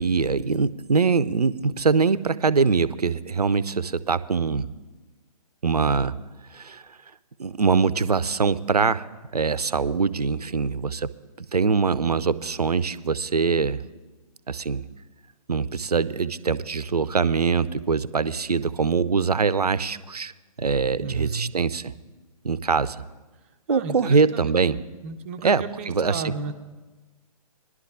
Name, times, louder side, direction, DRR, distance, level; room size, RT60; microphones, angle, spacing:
voice 1, 0.0-4.7 5.6-6.2 6.5-6.8 7.4-9.1 9.3-11.1 11.4-13.8 14.5-14.9 15.5-20.3 20.6-21.9 22.4-23.0 23.7-24.8 25.4-26.3, right 5 dB, 75° right, 17 dB, 0.5 m, -23 dB
voice 2, 21.0-21.5 23.7-26.5, right 5 dB, 20° right, 7 dB, 0.5 m, -33 dB
21.0 x 11.0 x 2.5 m, 1.2 s
figure-of-eight pair, 130°, 20 cm